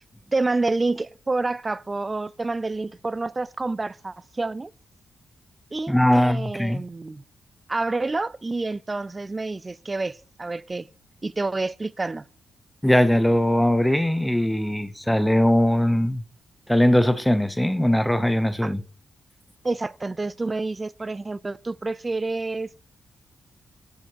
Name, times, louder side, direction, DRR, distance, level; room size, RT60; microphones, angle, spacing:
voice 1, 0.3-4.7 5.7-7.2 7.7-10.9 11.2-12.2 18.6-18.7 19.6-22.7, right 3 dB, 20° right, 0.4 m, -28 dB
voice 2, 5.9-6.8 12.8-16.2 16.7-18.8, left 1 dB, 5° left, 0.8 m, -20 dB
10.5 x 10.0 x 4.6 m
wide cardioid pair, 135°, 0 cm